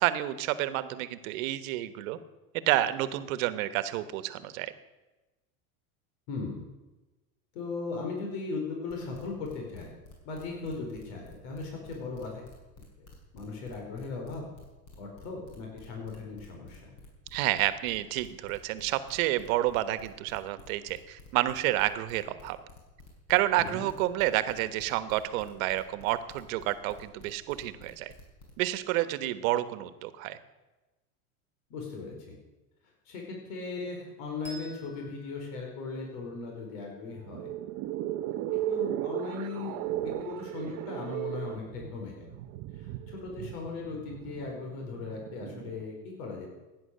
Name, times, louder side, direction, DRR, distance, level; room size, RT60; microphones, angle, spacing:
voice 1, 0.0-2.2 2.7-4.7 17.3-22.6 23.3-28.1 28.6-30.4, right 15 dB, 65° right, 13 dB, 1.3 m, -29 dB
voice 2, 6.3-6.6 7.5-9.9 10.2-12.4 13.0-13.1 13.3-14.4 15.0-16.8 23.6-23.9 31.7-32.1 33.0-37.5 38.5-42.3 42.7-46.5, left 4 dB, 65° left, 0 dB, 4.7 m, -38 dB
sound 1, 8.9-28.5, left 3 dB, 45° left, 6.2 m, -52 dB
Bell, 34.4-37.5, right 2 dB, 10° left, 4.4 m, -53 dB
sound 2, 37.1-45.9, right 13 dB, 45° right, 0.8 m, -36 dB
16.5 x 9.9 x 6.7 m, 1.1 s
supercardioid pair, 125°, 44 cm